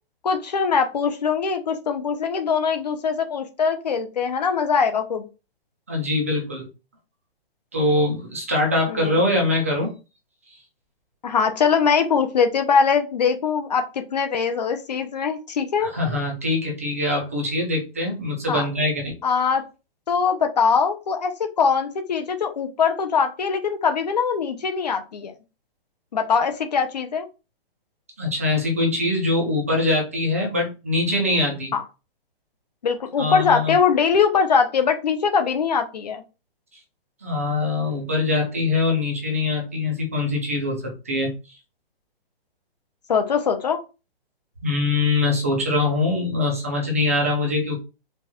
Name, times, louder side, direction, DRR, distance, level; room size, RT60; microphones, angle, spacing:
voice 1, 0.2-5.3 8.9-9.2 11.2-15.9 18.5-18.7 19.2-19.6 20.1-25.3 26.1-27.3 31.7-31.8 32.8-36.2 43.1-43.8, left 6 dB, 40° left, 7 dB, 0.7 m, -22 dB
voice 2, 5.9-6.6 7.7-9.9 15.8-19.1 28.2-31.7 33.2-33.8 37.2-41.3 44.6-47.8, left 2 dB, 15° right, 0 dB, 0.5 m, -23 dB
4.6 x 2.4 x 4.2 m, 0.30 s
hypercardioid pair, 180°, 31 cm